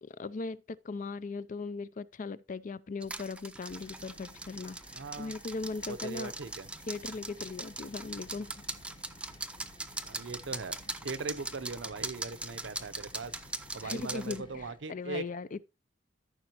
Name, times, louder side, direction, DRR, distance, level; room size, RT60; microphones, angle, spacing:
voice 1, 0.0-4.8 5.2-6.3 6.9-8.6 13.8-14.6 14.9-15.6, left 3 dB, 45° left, 0.5 m, -38 dB
sound 1, 3.0-14.4, right 2 dB, 5° right, 0.6 m, -41 dB
sound 2, 3.7-14.8, left 1 dB, 25° left, 1.1 m, -55 dB
voice 2, 4.9-5.4 5.9-6.7 10.0-13.4 13.7-15.2, right 4 dB, 75° right, 0.7 m, -40 dB
sound 3, 7.0-14.1, left 3 dB, 75° left, 0.8 m, -61 dB
13.5 x 6.1 x 2.9 m
head